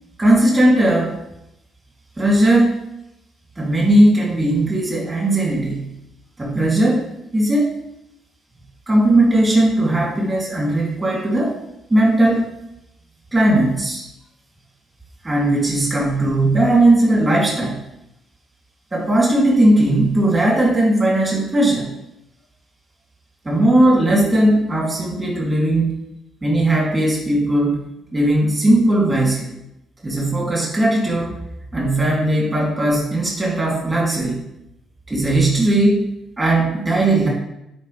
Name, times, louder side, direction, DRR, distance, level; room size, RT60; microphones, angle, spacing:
voice 1, 0.2-1.2 2.2-2.8 3.6-5.9 6.4-7.1 7.3-7.7 8.9-11.6 11.9-12.5 13.3-14.0 15.2-17.8 18.9-21.9 23.4-26.0 26.4-27.8 28.1-29.5 30.0-31.4 31.7-34.4 35.1-36.0 36.4-37.3, right 1 dB, 25° right, -4 dB, 3.0 m, -17 dB
10.5 x 4.5 x 3.4 m, 0.83 s
cardioid pair, 90°, 0 cm